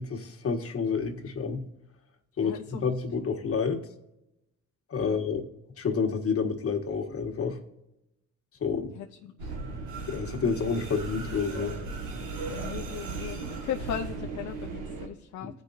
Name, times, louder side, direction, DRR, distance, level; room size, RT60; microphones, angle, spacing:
voice 1, 0.0-1.6 2.4-3.8 4.9-5.5 5.8-7.6 8.6-8.9 10.1-11.8 15.4-15.6, left 5 dB, 50° left, 3 dB, 1.5 m, -29 dB
voice 2, 2.4-2.9 5.0-5.2 9.0-9.5 12.4-15.6, left 10 dB, 70° left, 3 dB, 0.6 m, -38 dB
sound 1, 9.4-15.1, right 3 dB, 90° right, 1.5 m, -36 dB
15.0 x 5.1 x 2.6 m, 0.89 s
cardioid pair, 90°, 30 cm